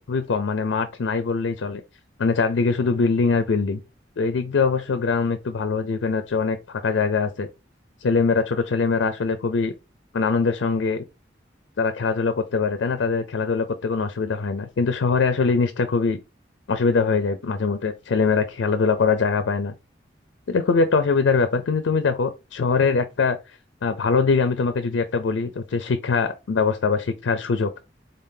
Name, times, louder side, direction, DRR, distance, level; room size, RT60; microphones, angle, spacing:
voice 1, 0.0-1.8 2.2-3.8 4.2-7.5 8.0-9.7 10.1-11.0 11.8-16.2 16.7-19.7 20.5-23.4 23.8-27.8, left 4 dB, 90° left, 0.4 m, -22 dB
3.9 x 3.7 x 2.6 m
head